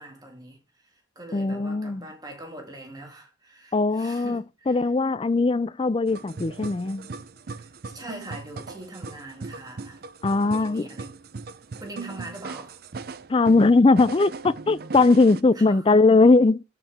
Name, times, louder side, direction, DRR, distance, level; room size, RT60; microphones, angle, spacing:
voice 1, 0.0-4.9 7.6-10.0 10.4-11.1 11.8-12.8 15.5-15.8, right 1 dB, 20° right, 2.1 m, -42 dB
voice 2, 1.3-2.0 3.7-7.1 10.2-10.9 13.3-16.6, left 3 dB, 25° left, 0.3 m, -20 dB
sound 1, 6.1-15.4, right 4 dB, 50° right, 0.5 m, -39 dB
13.5 x 4.6 x 3.5 m
head